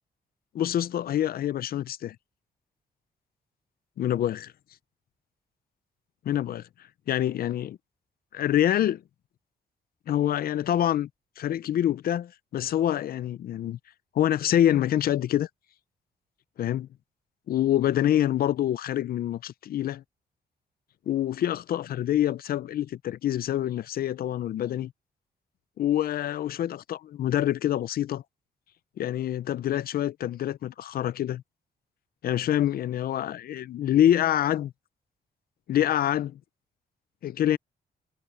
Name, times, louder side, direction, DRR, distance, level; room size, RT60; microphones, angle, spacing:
voice 1, 0.5-2.2 4.0-4.5 6.3-6.6 7.1-7.8 8.3-9.0 10.1-11.1 11.4-13.8 14.1-15.5 16.6-16.9 17.5-20.0 21.1-24.9 25.8-28.2 29.0-31.4 32.2-34.7 35.7-36.4 37.2-37.6, left 11 dB, 60° left, 0.5 m, -26 dB
wide cardioid pair, 150°, 17 cm